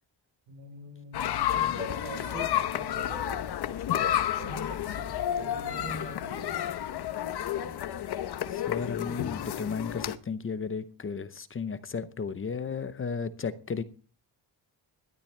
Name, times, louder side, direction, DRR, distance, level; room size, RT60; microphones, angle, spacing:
voice 1, 0.5-3.6 3.9-6.7 7.6-7.7, right 3 dB, 85° right, 8 dB, 3.8 m, -44 dB
sound 1, 1.1-10.2, left 11 dB, 60° left, 1.0 m, -31 dB
voice 2, 8.5-13.8, left 5 dB, 30° left, 12 dB, 0.8 m, -34 dB
17.5 x 12.0 x 3.3 m, 0.38 s
wide cardioid pair, 155°, 43 cm